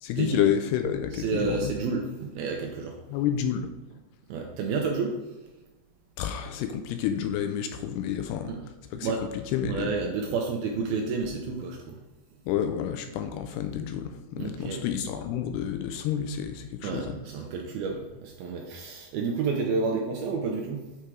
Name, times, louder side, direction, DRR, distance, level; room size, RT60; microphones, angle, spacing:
voice 1, 0.0-1.7 3.1-3.7 6.2-8.6 8.9-9.1 9.5-9.9 12.5-17.2, left 9 dB, 80° left, 7 dB, 2.5 m, -29 dB
voice 2, 1.1-3.0 4.3-5.2 8.5-8.7 8.9-9.2 9.6-12.0 14.4-14.9 16.8-20.8, right 4 dB, 75° right, 1 dB, 2.3 m, -30 dB
8.8 x 4.8 x 4.6 m, 1.1 s
omnidirectional pair, 5.1 m